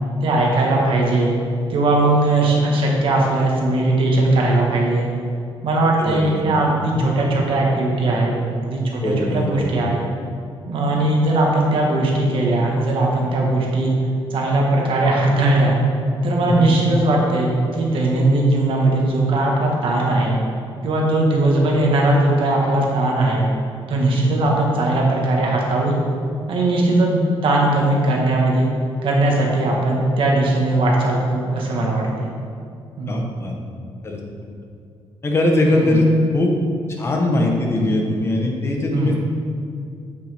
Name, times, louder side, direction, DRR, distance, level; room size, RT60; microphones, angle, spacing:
voice 1, 0.2-1.3 1.7-5.1 5.6-10.0 10.7-13.9 14.3-15.8 16.2-20.4 20.8-23.5 23.9-25.9 26.5-28.7 29.0-32.3 33.0-33.2 35.6-36.0 38.9-39.1, right 2 dB, 65° right, -1 dB, 1.4 m, -19 dB
voice 2, 6.0-6.4 6.9-7.1 9.0-9.7 16.5-16.8 24.1-24.3 33.1-33.5 34.0-34.2 35.2-36.1 36.3-36.5 37.0-39.2, left 2 dB, 25° left, 0 dB, 1.0 m, -21 dB
7.9 x 6.6 x 3.5 m, 2.4 s
wide cardioid pair, 165°, 10 cm